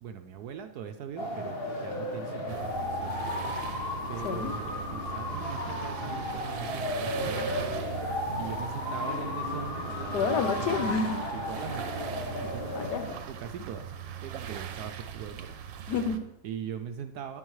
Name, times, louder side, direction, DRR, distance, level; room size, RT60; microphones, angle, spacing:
voice 1, 0.0-3.3 4.1-7.8 8.4-10.8 11.3-12.0 12.4-12.7 13.3-15.6 16.4-17.4, right 8 dB, 70° right, 7 dB, 1.0 m, -41 dB
sound 1, 1.2-13.2, left 1 dB, 35° left, 1.5 m, -34 dB
sound 2, 2.5-16.2, right 9 dB, 85° right, 1.5 m, -40 dB
voice 2, 4.2-4.6 10.1-11.3 12.7-13.1 15.9-16.3, left 5 dB, 65° left, 8 dB, 1.3 m, -29 dB
10.5 x 9.0 x 3.2 m, 0.85 s
omnidirectional pair, 2.0 m